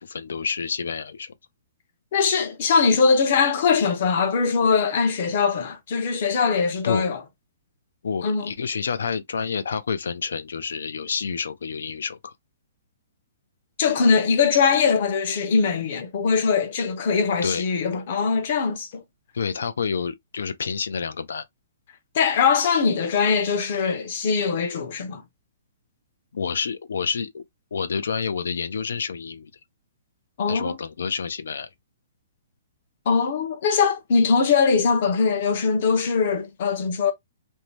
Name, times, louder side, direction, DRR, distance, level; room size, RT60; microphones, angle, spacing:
voice 1, 0.0-1.3 6.8-7.1 8.0-12.3 17.4-17.6 19.3-21.4 26.3-27.4 27.7-29.5 30.5-31.7, left 6 dB, 90° left, 0.5 m, -28 dB
voice 2, 2.1-7.2 8.2-8.5 13.8-19.0 22.1-25.2 30.4-30.8 33.1-37.1, left 5 dB, 40° left, 0.6 m, -21 dB
2.7 x 2.1 x 3.1 m
hypercardioid pair, 175°, 0 cm